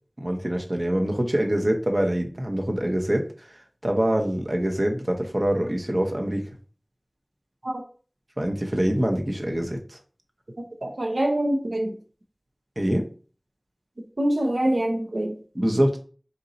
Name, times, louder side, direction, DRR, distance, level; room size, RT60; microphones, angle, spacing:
voice 1, 0.2-3.5 3.8-6.4 8.4-10.0 12.8-13.1 15.5-16.0, right 1 dB, 50° right, 3 dB, 0.8 m, -24 dB
voice 2, 10.6-11.9 14.2-15.4, right 1 dB, 90° right, 2 dB, 0.6 m, -25 dB
4.2 x 2.7 x 3.9 m, 0.40 s
wide cardioid pair, 40°, 0 cm